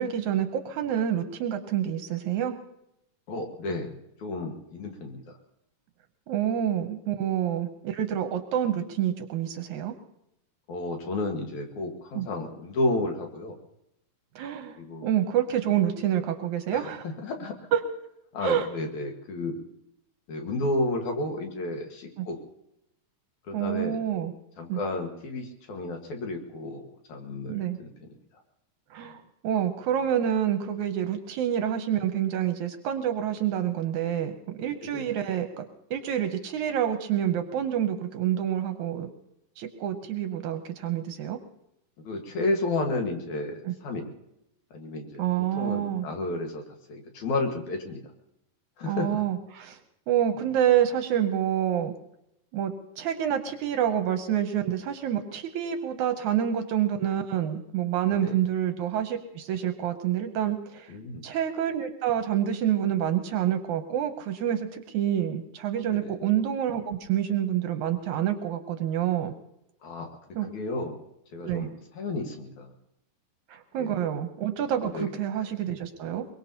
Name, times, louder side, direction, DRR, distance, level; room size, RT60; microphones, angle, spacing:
voice 1, 0.0-2.6 6.3-9.9 12.2-12.3 14.4-14.8 15.0-17.0 17.7-17.8 18.4-18.7 22.2-22.3 23.5-24.3 24.7-24.8 27.5-27.8 28.9-39.1 39.6-41.4 43.7-43.8 45.2-46.1 48.8-49.8 50.1-51.9 52.5-60.9 61.2-69.3 70.4-70.5 71.4-71.7 73.5-76.3, right 10 dB, 75° right, 7 dB, 2.0 m, -27 dB
voice 2, 3.3-5.4 10.7-13.6 14.8-15.1 16.7-17.5 18.3-19.6 20.3-22.4 23.5-24.0 24.6-27.9 34.9-35.0 42.0-44.1 44.7-45.2 45.5-46.6 46.9-48.0 48.8-49.2 50.3-50.4 58.1-58.4 60.9-61.2 65.9-66.1 69.8-70.1 70.4-71.0 71.3-72.7 73.8-74.0 74.9-75.1, left 2 dB, 60° left, 3 dB, 2.9 m, -32 dB
22.5 x 22.0 x 2.9 m, 0.81 s
omnidirectional pair, 3.9 m